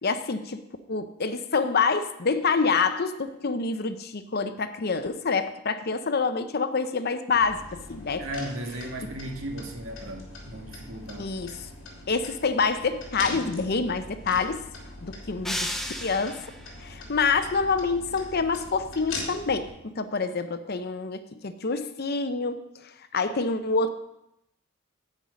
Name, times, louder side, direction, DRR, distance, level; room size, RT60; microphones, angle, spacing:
voice 1, 0.0-0.6 0.9-8.2 11.2-11.7 12.1-14.6 15.0-15.7 16.0-16.4 16.8-22.6 23.1-23.9, left 4 dB, 50° left, 10 dB, 0.7 m, -27 dB
sound 1, 7.3-19.7, left 2 dB, 70° left, 3.0 m, -41 dB
voice 2, 8.2-11.3, right 1 dB, 75° right, 4 dB, 1.7 m, -36 dB
sound 2, 15.4-16.7, equal, ahead, 0.7 m, -33 dB
9.9 x 8.6 x 5.1 m, 0.84 s
head